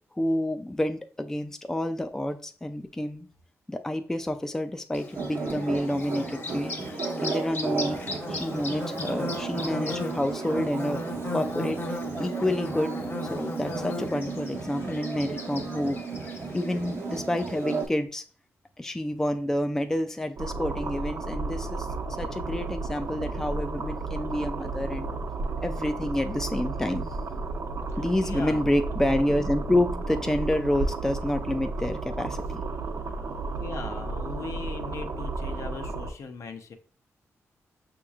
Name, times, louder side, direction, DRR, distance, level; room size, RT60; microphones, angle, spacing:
voice 1, 0.1-3.3 3.7-6.8 7.2-8.0 8.3-11.0 11.3-13.0 13.2-16.0 16.5-18.2 18.8-21.9 22.2-25.1 25.6-27.1 28.0-32.6, left 1 dB, 10° left, 7 dB, 0.3 m, -28 dB
Bird / Buzz, 4.9-17.9, left 2 dB, 45° left, 1.0 m, -37 dB
sound 1, 5.1-17.9, right 5 dB, 50° right, 0.6 m, -34 dB
sound 2, 20.4-36.1, right 3 dB, 80° right, 0.8 m, -33 dB
voice 2, 27.9-28.7 33.6-36.7, left 4 dB, 65° left, 5 dB, 0.6 m, -39 dB
6.2 x 2.9 x 2.4 m, 0.39 s
cardioid pair, 100°, 5 cm